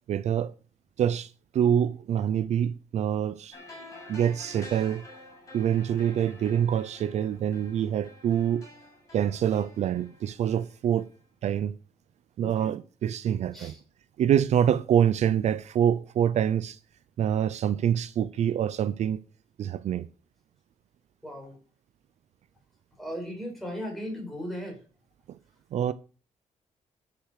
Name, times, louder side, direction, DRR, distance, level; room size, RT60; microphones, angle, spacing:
voice 1, 0.1-0.5 1.0-3.6 4.1-5.0 5.5-8.7 9.1-11.1 11.4-11.7 12.4-13.7 14.2-16.8 17.2-19.2 19.6-20.1 25.7-25.9, right 9 dB, 65° right, 0.6 m, -26 dB
sound 1, 3.5-11.2 11.4-11.5, left 2 dB, 25° left, 7.6 m, -49 dB
voice 2, 12.4-12.8 13.5-13.8 21.2-21.6 23.0-24.8, equal, ahead, 5.2 m, -37 dB
13.0 x 7.1 x 6.5 m
wide cardioid pair, 175°, 13 cm